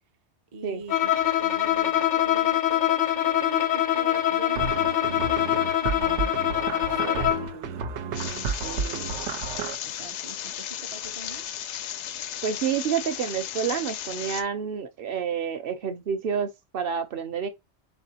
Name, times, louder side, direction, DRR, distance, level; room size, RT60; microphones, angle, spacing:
voice 1, 0.5-1.1 1.4-6.3 6.9-9.5 9.8-11.4, right 3 dB, 40° right, 0.5 m, -42 dB
Bowed string instrument, 0.9-7.5, left 11 dB, 55° left, 0.5 m, -24 dB
sound 1, 4.6-9.8, right 5 dB, 90° right, 0.9 m, -32 dB
sound 2, 8.1-14.4, left 10 dB, 90° left, 0.9 m, -35 dB
voice 2, 12.4-17.5, right 7 dB, 60° right, 0.9 m, -29 dB
4.1 x 4.1 x 2.8 m
omnidirectional pair, 1.2 m